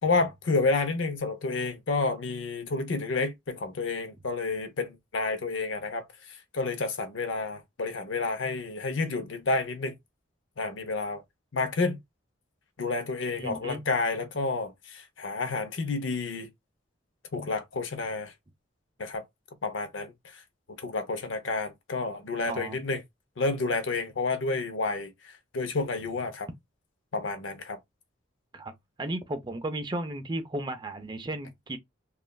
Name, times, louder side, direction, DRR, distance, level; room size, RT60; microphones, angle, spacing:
voice 1, 0.0-6.0 6.5-10.0 10.6-11.2 11.5-12.0 12.8-16.5 17.3-18.3 19.0-19.2 19.6-20.1 20.8-23.0 23.4-25.1 25.5-26.5 27.1-27.8, left 3 dB, 70° left, 0.6 m, -30 dB
voice 2, 13.4-13.8 22.5-22.8 28.5-28.7 29.0-31.8, right 1 dB, 20° right, 0.4 m, -34 dB
3.1 x 2.3 x 2.2 m
head